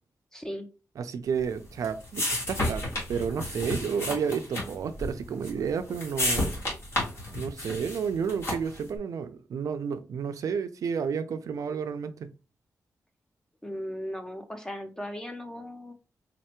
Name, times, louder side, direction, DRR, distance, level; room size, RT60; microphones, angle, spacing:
voice 1, 0.3-0.7 13.6-15.9, equal, 10° left, 0.6 m, -37 dB
voice 2, 1.0-6.6 7.3-12.3, right 6 dB, 75° right, 0.4 m, -31 dB
sound 1, 1.4-8.9, left 1 dB, 50° left, 1.9 m, -32 dB
3.9 x 3.2 x 2.9 m
wide cardioid pair, 155°, 6 cm